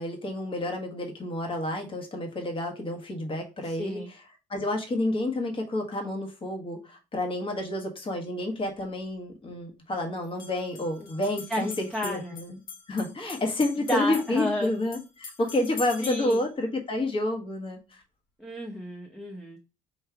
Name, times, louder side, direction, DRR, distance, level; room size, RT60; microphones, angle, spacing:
voice 1, 0.0-4.2 4.5-12.6 12.9-18.0, left 1 dB, 30° left, 2 dB, 1.3 m, -30 dB
voice 2, 3.6-4.1 11.5-12.4 13.9-14.7 16.0-16.4 18.4-19.6, left 1 dB, ahead, 0 dB, 0.7 m, -31 dB
sound 1, 10.2-16.5, left 5 dB, 60° left, 1.5 m, -43 dB
3.5 x 3.1 x 4.7 m, 0.30 s
cardioid pair, 110°, 17 cm